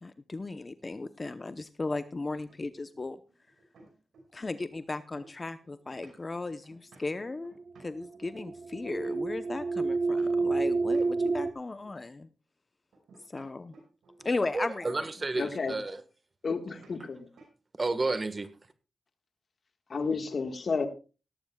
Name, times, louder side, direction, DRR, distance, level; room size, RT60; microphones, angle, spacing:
voice 1, 0.0-3.2 4.3-12.3 13.3-13.8 14.2-15.0, left 3 dB, 35° left, 11 dB, 0.8 m, -36 dB
sound 1, 2.5-4.5 4.7-10.6 10.9-12.0 12.9-14.7 16.7-17.0 17.4-17.6 17.9-18.5, right 2 dB, 90° right, 5.6 m, -58 dB
sound 2, 7.6-11.5, right 3 dB, 70° right, 1.0 m, -29 dB
voice 2, 14.5-16.0 17.8-18.5, right 3 dB, 40° right, 11 dB, 1.5 m, -31 dB
voice 3, 15.3-15.8 16.4-17.3 19.9-20.9, left 4 dB, 60° left, 8 dB, 1.6 m, -31 dB
17.0 x 14.0 x 2.3 m, 0.32 s
cardioid pair, 60°, 0 cm